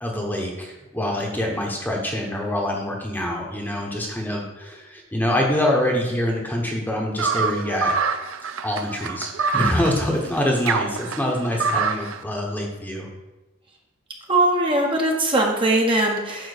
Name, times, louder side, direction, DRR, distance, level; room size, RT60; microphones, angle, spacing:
voice 1, 0.0-7.9 8.6-13.1, left 1 dB, 10° left, -1 dB, 1.1 m, -25 dB
sound 1, 7.2-12.2, right 5 dB, 70° right, 0.5 m, -25 dB
voice 2, 14.3-16.5, right 1 dB, 25° right, 0 dB, 0.9 m, -20 dB
8.9 x 3.0 x 6.5 m, 1.1 s
head